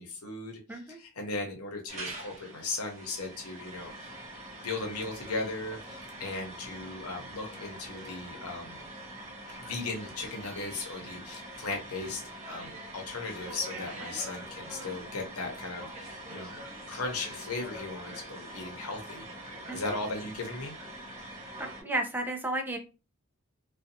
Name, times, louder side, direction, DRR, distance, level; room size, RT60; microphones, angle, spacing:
voice 1, 0.0-4.1 4.6-8.8 9.6-16.5 16.9-19.2 19.7-20.7, left 3 dB, 75° left, 1 dB, 0.7 m, -37 dB
sound 1, 1.9-21.8, right 1 dB, 35° right, 0.9 m, -44 dB
voice 2, 21.6-22.8, right 1 dB, 10° right, 3 dB, 0.4 m, -32 dB
2.5 x 2.2 x 2.7 m, 0.32 s
head